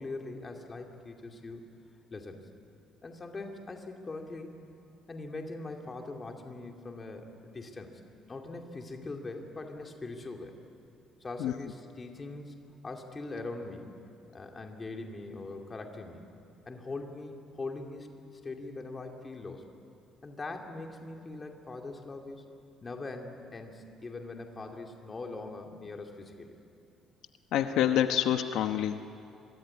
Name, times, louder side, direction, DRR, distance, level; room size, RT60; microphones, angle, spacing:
voice 1, 0.0-1.7 2.1-2.5 3.0-4.6 5.1-8.0 8.3-10.5 11.2-12.5 12.8-13.9 14.3-16.3 16.7-18.1 18.4-19.6 20.2-22.4 22.8-26.6, left 3 dB, 20° left, 3 dB, 2.4 m, -41 dB
voice 2, 27.5-29.0, left 10 dB, 70° left, 7 dB, 1.0 m, -27 dB
26.5 x 23.0 x 9.7 m, 2.7 s
cardioid pair, 175°, 0 cm